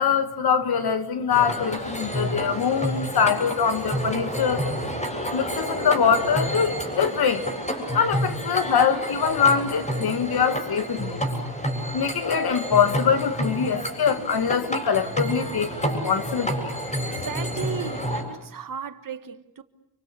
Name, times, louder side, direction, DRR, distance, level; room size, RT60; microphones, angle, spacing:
voice 1, 0.0-4.6 5.3-7.4 7.9-11.3 11.9-16.7, left 7 dB, 70° left, 1.9 m, -23 dB
sound 1, 1.3-18.2, equal, 20° left, 7.7 m, -29 dB
voice 2, 17.1-19.6, right 8 dB, 60° right, 1.5 m, -35 dB
28.5 x 24.0 x 8.5 m
cardioid pair, 90°, 39 cm